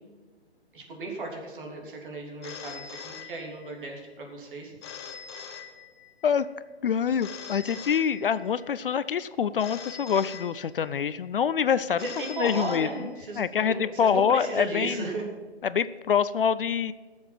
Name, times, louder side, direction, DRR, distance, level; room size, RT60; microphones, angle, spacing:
voice 1, 0.7-4.7 12.0-15.2, right 2 dB, 50° right, 1 dB, 3.3 m, -35 dB
Telephone, 2.4-3.9 4.8-6.3 7.2-8.7 9.6-11.1 12.0-13.5, left 6 dB, 25° left, 0.9 m, -43 dB
voice 2, 6.8-12.1 12.3-12.9 13.4-15.0 15.6-16.9, left 7 dB, 55° left, 15 dB, 0.5 m, -25 dB
16.5 x 7.2 x 6.0 m, 1.4 s
hypercardioid pair, 150°, 33 cm